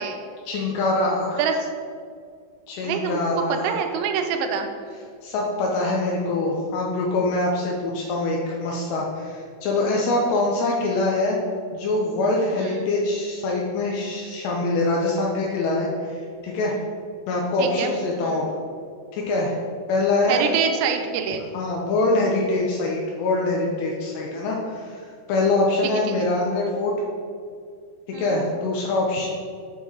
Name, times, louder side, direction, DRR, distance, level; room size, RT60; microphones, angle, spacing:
voice 1, 0.5-1.4 2.7-3.8 5.2-11.4 11.7-16.8 17.3-18.5 19.1-19.5 19.9-20.4 21.5-26.9 28.2-29.3, left 2 dB, 90° left, -2 dB, 2.4 m, -24 dB
voice 2, 1.4-1.7 2.8-3.2 3.5-4.7 12.6-12.7 17.6-17.9 18.2-18.4 20.3-21.4 28.1-28.4, right 6 dB, 85° right, 5 dB, 3.4 m, -25 dB
7.9 x 3.7 x 6.1 m, 2.2 s
omnidirectional pair, 5.9 m